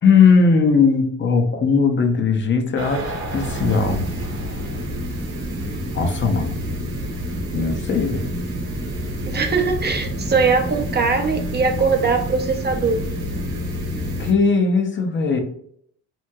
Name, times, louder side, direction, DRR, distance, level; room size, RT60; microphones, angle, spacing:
voice 1, 0.0-4.1 5.9-6.6 7.5-8.3 14.1-15.4, left 5 dB, 40° left, 0.5 m, -18 dB
sound 1, 2.8-14.3, equal, 55° right, 1.0 m, -28 dB
voice 2, 9.3-13.0, right 4 dB, 35° right, 0.5 m, -21 dB
2.9 x 2.7 x 2.2 m
cardioid pair, 90°, 30 cm